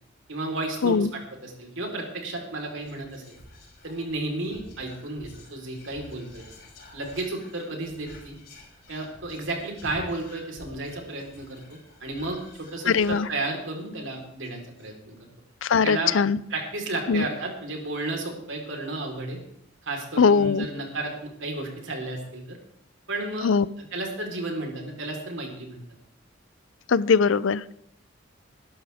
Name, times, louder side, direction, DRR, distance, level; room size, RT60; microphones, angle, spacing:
voice 1, 0.3-3.3 3.8-6.4 6.9-8.3 8.9-15.2 15.8-16.1 16.5-19.4 19.8-22.6 23.1-23.5 23.8-25.8, right 2 dB, 80° right, 1 dB, 4.1 m, -33 dB
Whispering, 2.8-13.8 14.1-14.2 14.4-14.9, left 1 dB, 55° left, 6.1 m, -49 dB
voice 2, 12.9-13.3 15.6-16.4 17.1-17.3 20.2-20.7 23.4-23.7 26.9-27.7, left 5 dB, 85° left, 19 dB, 0.5 m, -21 dB
21.5 x 12.0 x 3.6 m, 0.74 s
head